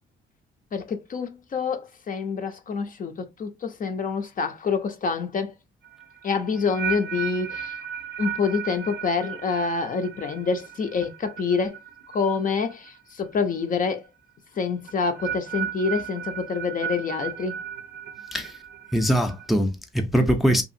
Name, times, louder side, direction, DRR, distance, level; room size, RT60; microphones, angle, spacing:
voice 1, 0.7-5.5 6.2-7.7 8.2-11.8 12.1-14.1 14.6-17.6, left 5 dB, 45° left, 0.6 m, -27 dB
sound 1, 5.8-13.0 13.2-13.6 14.9-19.5, right 8 dB, 60° right, 0.5 m, -35 dB
voice 2, 18.9-20.6, equal, ahead, 0.5 m, -22 dB
2.7 x 2.5 x 2.5 m
cardioid pair, 90°, 20 cm